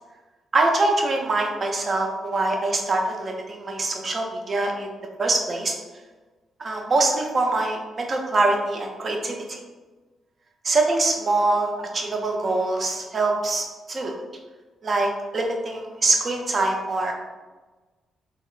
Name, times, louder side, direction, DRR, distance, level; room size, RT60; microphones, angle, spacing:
voice 1, 0.5-4.9 5.2-5.7 6.6-9.6 10.6-14.1 14.8-17.1, right 2 dB, 45° right, 1 dB, 0.6 m, -24 dB
3.4 x 2.3 x 2.4 m, 1.3 s
hypercardioid pair, 40°, 0 cm